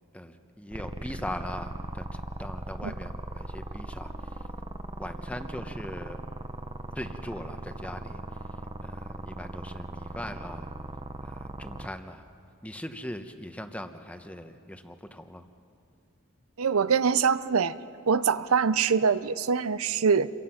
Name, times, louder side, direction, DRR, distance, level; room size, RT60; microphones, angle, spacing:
voice 1, 0.1-4.1 5.0-6.2 6.9-8.2 8.8-10.7 11.2-12.2 12.6-15.4, left 1 dB, 5° left, 7 dB, 1.0 m, -40 dB
sound 1, 0.7-11.9, right 2 dB, 25° right, 0.8 m, -38 dB
voice 2, 16.6-17.7 18.1-20.3, right 6 dB, 90° right, 15 dB, 0.7 m, -24 dB
28.5 x 23.5 x 5.8 m, 2.5 s
head